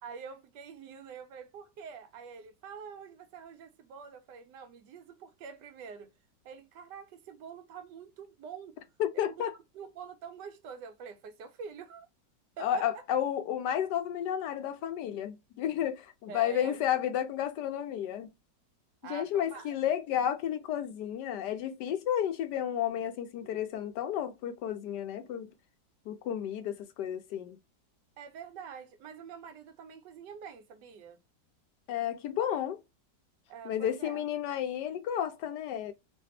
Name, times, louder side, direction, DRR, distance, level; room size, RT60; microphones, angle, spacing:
voice 1, 0.0-6.1 6.4-8.8 9.2-9.3 9.7-12.1 12.6-13.0 16.3-16.8 19.0-19.8 28.2-31.2 33.5-34.3, right 6 dB, 75° right, 1.2 m, -46 dB
voice 2, 9.0-9.5 12.6-18.3 19.1-25.5 26.1-27.6 31.9-32.8 33.6-35.9, left 10 dB, 75° left, 1.1 m, -32 dB
3.3 x 2.5 x 2.6 m
omnidirectional pair, 2.0 m